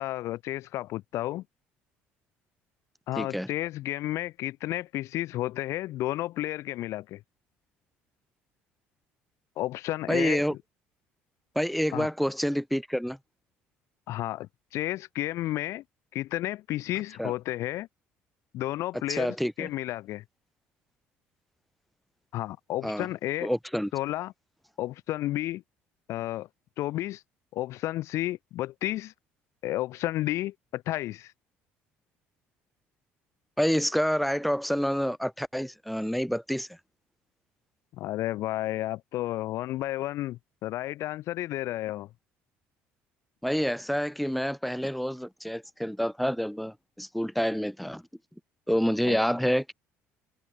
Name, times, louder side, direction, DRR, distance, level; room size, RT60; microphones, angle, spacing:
voice 1, 0.0-1.4 3.1-7.2 9.6-10.4 11.9-12.1 14.1-15.8 16.1-17.9 18.5-20.2 22.3-23.5 23.9-24.3 24.8-25.6 26.1-26.5 26.8-27.2 27.5-29.1 29.6-31.3 38.0-42.1 49.0-49.2, left 15 dB, 70° left, 0.7 m, -32 dB
voice 2, 3.2-3.5 10.1-10.6 11.6-13.2 17.2-17.3 19.1-19.7 22.8-23.1 23.4-23.9 33.6-36.7 43.4-48.0 48.7-49.7, equal, ahead, 1.7 m, -28 dB
supercardioid pair, 75°, 5 cm